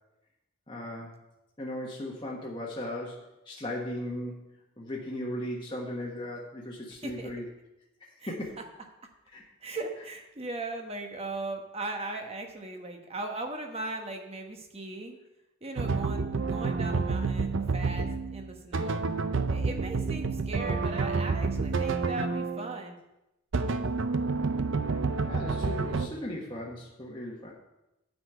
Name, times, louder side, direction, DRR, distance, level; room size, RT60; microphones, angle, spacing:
voice 1, 0.7-1.2 1.6-4.4 4.8-7.4 8.0-8.5 9.3-9.4 25.2-27.5, left 1 dB, 20° left, -5 dB, 1.3 m, -37 dB
voice 2, 8.2-8.6 9.6-15.2 15.6-19.0 19.5-23.0, right 2 dB, 25° right, 4 dB, 1.1 m, -38 dB
sound 1, 15.8-22.8 23.5-26.1, right 4 dB, 55° right, 0.5 m, -29 dB
9.5 x 5.1 x 7.8 m, 0.93 s
head